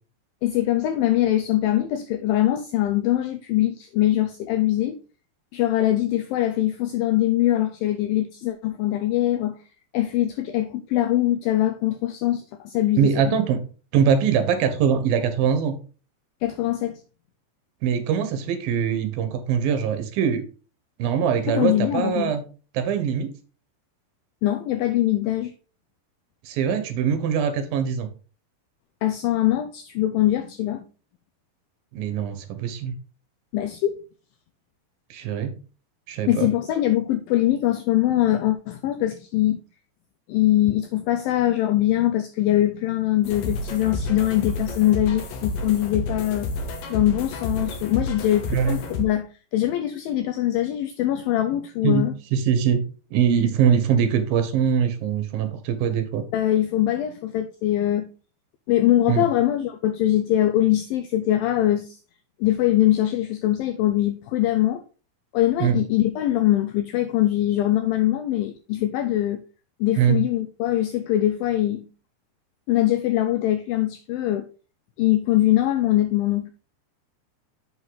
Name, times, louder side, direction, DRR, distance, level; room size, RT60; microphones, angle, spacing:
voice 1, 0.4-5.0 5.5-9.6 9.9-13.4 16.4-17.0 21.5-22.4 24.4-25.5 29.0-30.9 33.5-34.0 36.3-39.6 40.3-46.5 46.9-52.1 56.3-58.1 58.7-62.0 62.4-64.8 65.3-69.4 69.8-71.9 72.7-74.5 75.0-76.5, left 13 dB, 85° left, 2.1 m, -22 dB
voice 2, 13.0-13.6 13.9-15.8 17.8-20.4 21.0-22.4 22.7-23.3 26.4-28.1 31.9-33.0 35.1-35.6 36.1-36.5 48.5-48.8 51.8-52.8 53.1-56.2 59.1-59.3 65.6-65.8 70.0-70.2, right 7 dB, 70° right, 2.6 m, -22 dB
sound 1, 43.2-49.0, left 2 dB, 70° left, 1.8 m, -30 dB
7.8 x 5.4 x 3.9 m
omnidirectional pair, 4.7 m